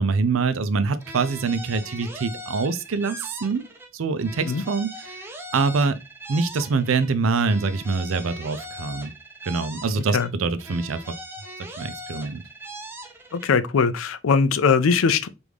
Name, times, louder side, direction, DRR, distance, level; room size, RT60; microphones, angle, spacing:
voice 1, 0.0-3.6 3.9-5.2 5.5-6.0 6.3-9.1 9.5-11.0 11.8-12.4, right 4 dB, 85° right, 0.5 m, -24 dB
sound 1, 1.0-3.9 4.2-7.1 7.4-10.3 10.6-13.5, equal, 10° right, 0.6 m, -40 dB
voice 2, 13.3-15.3, left 5 dB, 85° left, 0.4 m, -20 dB
4.8 x 2.6 x 3.4 m
head